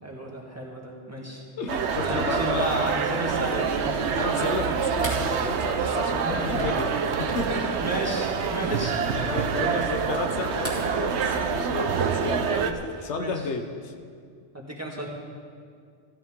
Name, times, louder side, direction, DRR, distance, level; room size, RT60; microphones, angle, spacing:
voice 1, 0.0-1.4 2.0-4.1 6.2-6.6 7.8-9.0 9.6-9.9 12.3-13.3 14.5-15.1, right 1 dB, 15° right, -2 dB, 1.7 m, -33 dB
voice 2, 1.6-2.7 4.1-6.9 7.2-7.8 9.1-12.5 13.0-13.9, left 4 dB, 90° left, 6 dB, 1.2 m, -32 dB
sound 1, 1.7-12.7, right 6 dB, 80° right, 1.0 m, -26 dB
sound 2, 4.3-10.3 10.6-11.6, equal, 30° left, 2.6 m, -41 dB
15.0 x 13.0 x 3.7 m, 2.2 s
omnidirectional pair, 1.1 m